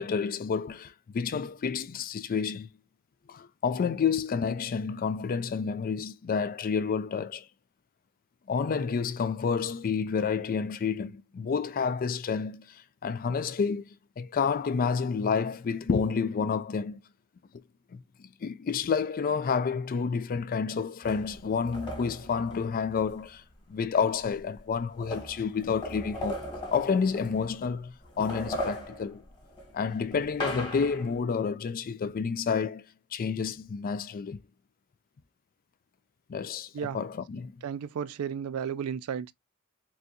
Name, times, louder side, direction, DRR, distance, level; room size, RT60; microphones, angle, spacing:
voice 1, 0.0-2.7 3.3-7.4 8.5-13.8 14.2-17.0 17.9-18.0 18.4-23.4 23.7-26.4 26.7-29.2 29.7-32.8 33.1-34.4 36.3-37.6, left 6 dB, 40° left, 0.3 m, -29 dB
sound 1, 21.0-23.2 24.2-24.3 24.5-27.7 28.0-31.2, left 1 dB, 20° left, 1.5 m, -38 dB
voice 2, 37.6-39.3, right 7 dB, 70° right, 0.3 m, -33 dB
4.1 x 2.3 x 2.5 m
head